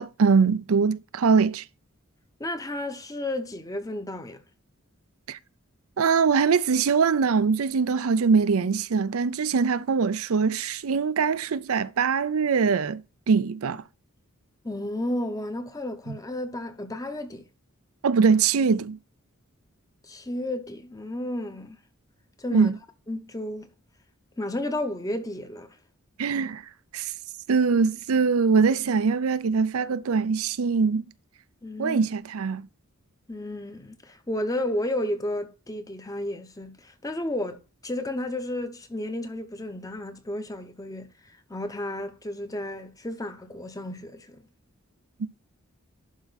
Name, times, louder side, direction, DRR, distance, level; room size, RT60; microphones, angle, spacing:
voice 1, 0.0-1.6 5.3-5.4 6.0-13.0 13.3-13.8 16.1-16.2 18.0-19.0 22.5-22.8 26.2-26.6 26.9-27.1 27.5-31.0 31.8-32.7, right 5 dB, 80° right, 0.5 m, -22 dB
voice 2, 2.4-4.4 14.6-17.4 20.0-21.8 22.4-22.7 23.1-23.7 24.4-25.7 31.6-32.0 33.3-44.4, left 1 dB, 15° left, 0.8 m, -32 dB
11.5 x 4.7 x 4.0 m
head